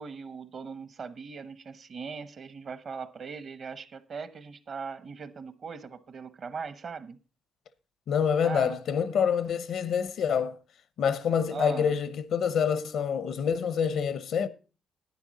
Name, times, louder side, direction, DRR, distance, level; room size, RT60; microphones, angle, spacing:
voice 1, 0.0-7.2 8.4-8.8 11.5-11.9, right 5 dB, 50° right, 0.9 m, -39 dB
voice 2, 8.1-10.6 11.0-14.5, left 7 dB, 70° left, 0.8 m, -27 dB
10.5 x 9.5 x 4.1 m
cardioid pair, 90°, 0 cm